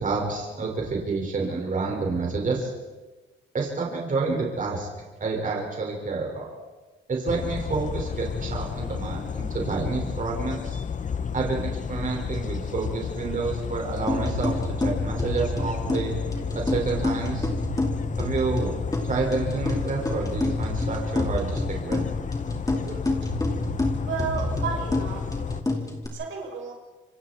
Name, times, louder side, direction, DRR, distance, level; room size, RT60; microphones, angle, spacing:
voice 1, 0.0-2.7 3.5-4.9 5.2-6.5 7.1-10.8 11.3-16.1 16.6-17.5 18.2-18.8 19.0-22.0, right 4 dB, 40° right, -1 dB, 5.7 m, -29 dB
sound 1, 7.3-25.6, left 6 dB, 40° left, 1.2 m, -32 dB
sound 2, 14.1-26.1, left 2 dB, 15° left, 4.6 m, -29 dB
voice 2, 24.0-25.2 26.1-26.7, right 5 dB, 75° right, 0 dB, 6.3 m, -32 dB
28.0 x 25.0 x 4.6 m, 1.2 s
cardioid pair, 90°, 20 cm